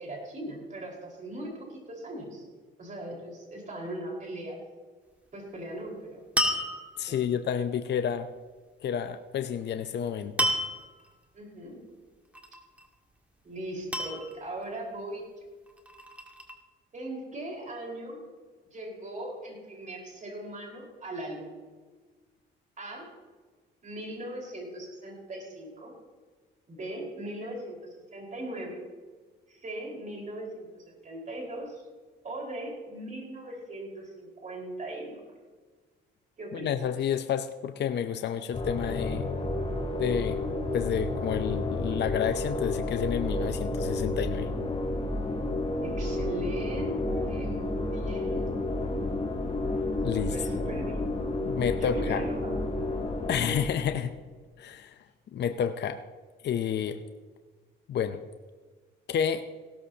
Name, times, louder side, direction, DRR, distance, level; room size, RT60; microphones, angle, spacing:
voice 1, 0.0-2.4 2.8-4.6 5.3-6.2 7.1-7.4 11.3-11.8 13.4-15.3 16.9-18.2 18.7-21.5 22.8-23.1 23.8-25.9 26.7-28.8 29.5-31.8 32.2-35.2 36.4-36.7 45.8-48.6 50.1-51.0 51.8-52.8, right 1 dB, 40° right, -1 dB, 4.8 m, -39 dB
sound 1, 6.4-7.3 10.4-11.0 12.3-12.9 13.9-14.7 15.7-16.5, equal, 5° right, 1.9 m, -30 dB
voice 2, 7.0-8.3 8.8-10.5 36.5-39.3 40.0-40.4 40.7-44.5 50.0-50.7 51.5-52.2 53.3-54.1 54.6-54.9 55.3-56.0 56.4-57.0 57.9-58.2 59.1-59.4, left 8 dB, 60° left, 9 dB, 0.7 m, -30 dB
sound 2, 38.5-54.1, left 2 dB, 30° left, 2.6 m, -31 dB
17.0 x 13.5 x 2.9 m, 1.4 s
cardioid pair, 90°, 20 cm